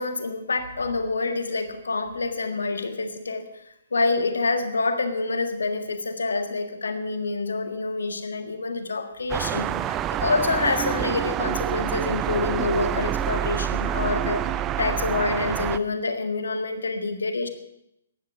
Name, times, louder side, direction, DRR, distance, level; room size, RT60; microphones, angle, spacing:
voice 1, 0.0-3.6 3.9-17.5, left 3 dB, 70° left, 7 dB, 1.8 m, -27 dB
sound 1, 9.3-15.8, right 11 dB, 20° right, 0.5 m, -27 dB
15.0 x 11.0 x 6.2 m, 0.80 s
figure-of-eight pair, 125°, 0 cm